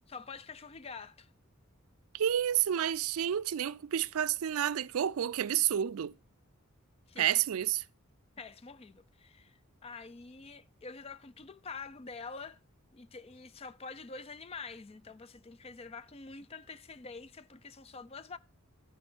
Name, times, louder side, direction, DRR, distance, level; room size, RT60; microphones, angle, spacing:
voice 1, 0.1-1.3 7.1-7.4 8.4-12.6 12.9-18.4, left 4 dB, 30° left, 0.4 m, -46 dB
voice 2, 2.1-6.1 7.2-7.8, right 10 dB, 85° right, 0.4 m, -30 dB
13.0 x 4.6 x 6.1 m
head